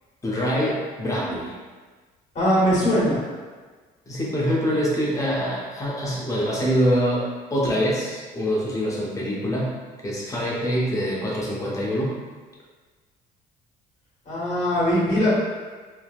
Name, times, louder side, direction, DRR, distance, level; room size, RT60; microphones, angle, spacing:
voice 1, 0.2-1.5 4.1-9.8 10.0-12.2, equal, 20° left, -4 dB, 0.7 m, -25 dB
voice 2, 2.3-3.2 14.2-15.3, equal, 45° left, -8 dB, 1.5 m, -20 dB
3.2 x 2.1 x 2.4 m, 1.4 s
cardioid pair, 110°, 17 cm